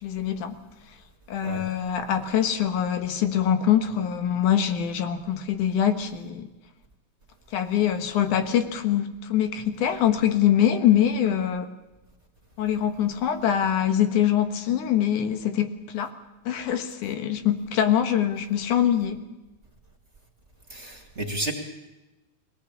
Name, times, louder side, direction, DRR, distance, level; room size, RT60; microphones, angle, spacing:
voice 1, 0.0-0.5 1.3-6.5 7.5-11.7 12.6-16.1 16.5-19.2, left 10 dB, 85° left, 8 dB, 2.9 m, -24 dB
voice 2, 20.7-21.5, right 1 dB, 25° right, 3 dB, 2.3 m, -31 dB
22.5 x 18.0 x 8.5 m, 1.0 s
omnidirectional pair, 3.4 m